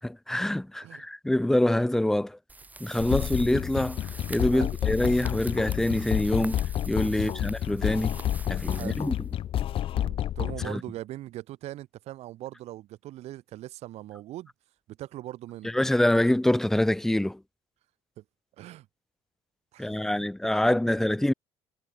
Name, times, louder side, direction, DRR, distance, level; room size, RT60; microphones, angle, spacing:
voice 1, 0.0-2.4 2.8-4.0 4.3-8.2 8.5-9.1 10.7-10.8 15.7-17.4 19.8-21.3, left 1 dB, 5° left, 0.3 m, -25 dB
sound 1, 2.5-9.6, right 2 dB, 15° right, 2.9 m, -46 dB
sound 2, 3.0-10.7, left 11 dB, 50° left, 0.7 m, -30 dB
voice 2, 8.7-9.0 9.9-14.5 15.0-15.7 18.2-18.3 18.6-18.9 19.7-20.3, right 15 dB, 65° right, 1.1 m, -41 dB
cardioid pair, 120°, 12 cm